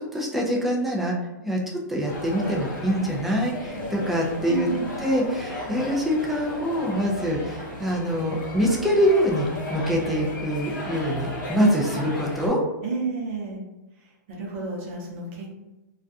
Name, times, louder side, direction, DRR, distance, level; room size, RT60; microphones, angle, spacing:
voice 1, 0.1-1.2 1.4-4.7 5.0-12.6, equal, ahead, -3 dB, 0.3 m, -24 dB
sound 1, 2.1-12.5, left 2 dB, 80° left, 0.8 m, -35 dB
voice 2, 4.5-4.9 11.6-11.7 12.8-13.6 14.0-15.5, right 4 dB, 40° right, -1 dB, 0.7 m, -31 dB
2.3 x 2.2 x 2.6 m, 1.0 s
hypercardioid pair, 150°, 10 cm